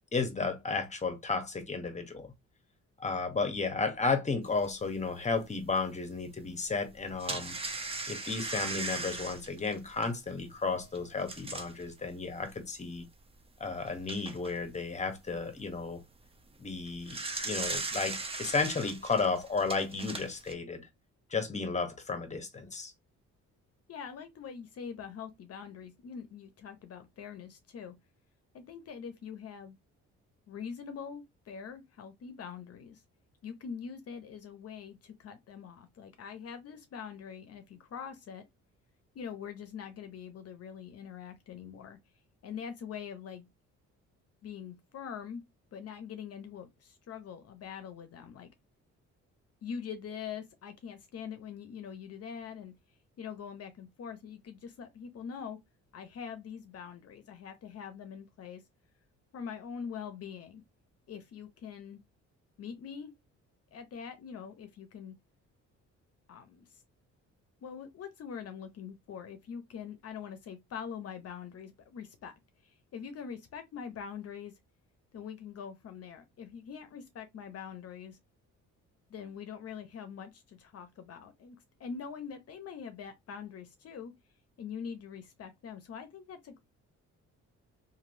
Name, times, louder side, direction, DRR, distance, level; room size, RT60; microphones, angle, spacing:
voice 1, 0.1-2.3 3.0-7.5 8.1-13.0 13.6-16.0 16.6-17.2 17.4-20.9 21.3-22.9, left 4 dB, 25° left, 0.8 m, -33 dB
sound 1, 4.6-4.7 5.3-5.4 6.9-11.8 12.5-12.6 13.0-13.1 13.7-14.6 16.7-20.5, right 3 dB, 20° right, 0.6 m, -38 dB
voice 2, 23.9-27.9 28.5-29.8 30.5-33.0 33.4-38.4 39.1-42.0 42.4-43.5 44.4-45.4 45.7-48.5 49.6-52.7 53.2-55.6 55.9-58.6 59.3-60.6 61.1-62.0 62.6-63.1 63.7-65.2 66.3-66.8 67.6-72.3 72.6-74.5 75.1-78.2 79.1-84.1 84.6-86.6, left 7 dB, 55° left, 0.6 m, -43 dB
3.0 x 2.6 x 2.6 m
cardioid pair, 90°, 30 cm